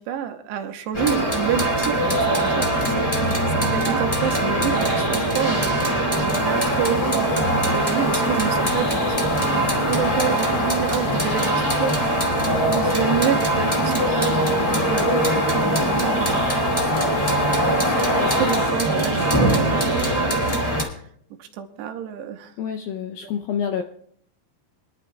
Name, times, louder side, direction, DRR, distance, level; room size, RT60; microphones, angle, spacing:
voice 1, 0.0-9.3 9.6-16.7 16.9-20.9 21.4-22.5 23.2-23.3, right 9 dB, 85° right, 6 dB, 3.1 m, -29 dB
sound 1, 0.9-20.8, right 1 dB, 15° left, 1.2 m, -22 dB
sound 2, 6.3-18.7, left 5 dB, 60° left, 1.7 m, -29 dB
sound 3, 9.8-13.3, left 2 dB, 45° left, 2.6 m, -40 dB
voice 2, 22.6-23.8, left 8 dB, 80° left, 4 dB, 2.1 m, -27 dB
25.5 x 11.0 x 2.3 m, 0.65 s
omnidirectional pair, 4.9 m